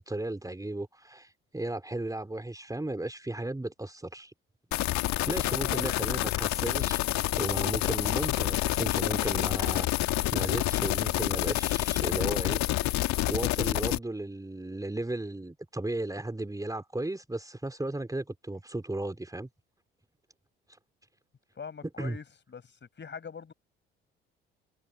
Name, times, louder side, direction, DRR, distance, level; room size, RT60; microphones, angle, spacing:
voice 1, 0.0-4.3 5.3-7.0 7.4-19.5 22.0-22.2, right 2 dB, 10° right, 3.9 m, -35 dB
sound 1, 4.7-14.0, left 17 dB, 65° left, 1.8 m, -28 dB
voice 2, 5.4-6.2 21.5-23.5, left 6 dB, 35° left, 5.1 m, -43 dB
hypercardioid pair, 50°, 30 cm